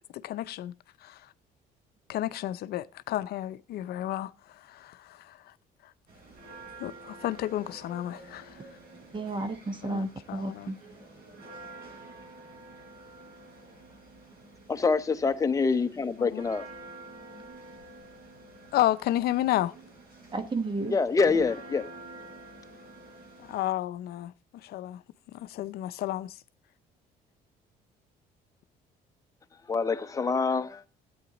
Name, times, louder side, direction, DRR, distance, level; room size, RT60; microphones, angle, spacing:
voice 1, 0.1-0.7 1.0-1.2 2.1-4.3 4.7-5.4 6.8-8.6 9.8-10.7 16.2-16.4 18.7-19.7 23.5-24.3 24.6-25.0 25.3-26.4, left 14 dB, 70° left, 0.5 m, -31 dB
sound 1, 6.1-23.6, right 2 dB, 65° right, 5.7 m, -48 dB
voice 2, 9.1-10.8 20.3-21.0, right 2 dB, 30° right, 1.0 m, -32 dB
voice 3, 14.7-16.6 20.9-21.9 29.7-30.8, left 4 dB, 20° left, 0.8 m, -26 dB
13.5 x 8.7 x 3.9 m
cardioid pair, 110°, 17 cm